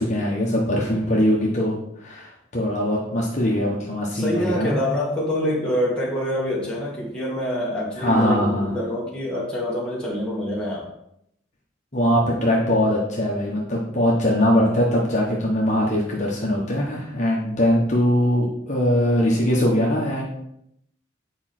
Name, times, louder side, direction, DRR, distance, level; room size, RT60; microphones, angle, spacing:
voice 1, 0.0-1.7 2.0-4.8 8.0-8.8 11.9-20.3, equal, 35° left, -3 dB, 1.3 m, -21 dB
voice 2, 4.1-10.9, left 1 dB, 5° left, -6 dB, 2.0 m, -26 dB
8.6 x 5.0 x 4.4 m, 0.76 s
head